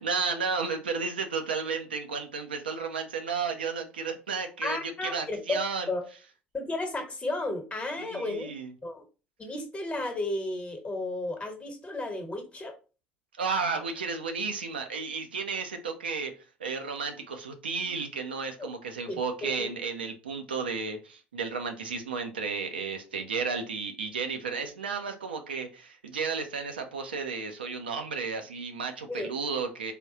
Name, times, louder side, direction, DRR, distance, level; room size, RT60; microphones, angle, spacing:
voice 1, 0.0-5.9 8.0-8.7 13.4-16.3 16.6-29.9, right 5 dB, 85° right, 5 dB, 0.4 m, -33 dB
voice 2, 4.6-5.6 5.9-6.0 6.5-8.5 8.8-9.0 9.4-12.7 18.6-18.7 19.1-19.7 29.1-29.3, left 2 dB, 25° left, 4 dB, 1.0 m, -33 dB
3.4 x 2.3 x 2.7 m, 0.34 s
figure-of-eight pair, 60°, 5 cm